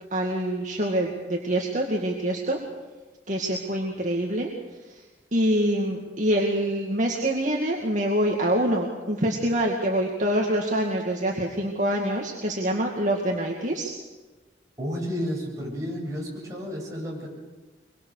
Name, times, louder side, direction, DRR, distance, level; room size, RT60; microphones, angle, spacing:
voice 1, 0.0-2.6 3.3-4.5 4.9-5.0 5.3-13.9, right 1 dB, 45° right, 0 dB, 2.3 m, -25 dB
voice 2, 14.8-17.3, equal, 20° right, -3 dB, 7.8 m, -31 dB
24.0 x 23.0 x 6.7 m, 1.2 s
head